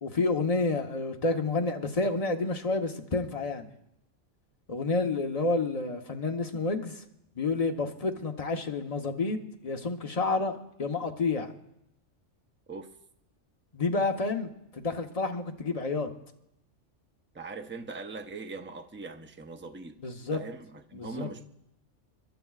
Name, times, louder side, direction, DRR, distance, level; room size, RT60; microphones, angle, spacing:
voice 1, 0.0-3.7 4.7-7.0 7.4-11.5 13.7-16.1 20.0-20.4 20.9-21.3, left 3 dB, 35° left, 1.0 m, -29 dB
voice 2, 17.3-20.0 20.3-21.4, right 3 dB, 15° right, 0.4 m, -41 dB
28.5 x 12.5 x 2.4 m
omnidirectional pair, 1.2 m